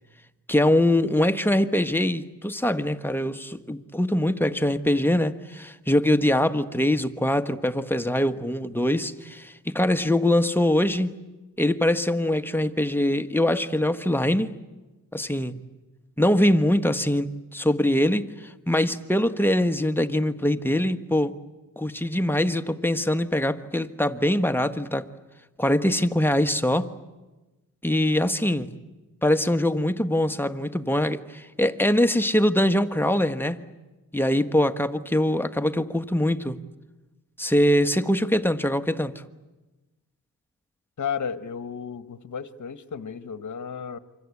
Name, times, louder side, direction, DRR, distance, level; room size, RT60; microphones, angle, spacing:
voice 1, 0.5-11.2 11.6-14.6 15.1-15.6 16.2-18.3 18.7-21.3 21.8-25.1 25.6-26.9 27.8-28.7 29.2-33.6 34.1-36.6 37.4-39.1, left 1 dB, 5° left, 8 dB, 1.4 m, -23 dB
voice 2, 41.0-44.0, left 7 dB, 60° left, 12 dB, 1.3 m, -33 dB
28.5 x 25.0 x 8.5 m, 1.1 s
cardioid pair, 60°, 33 cm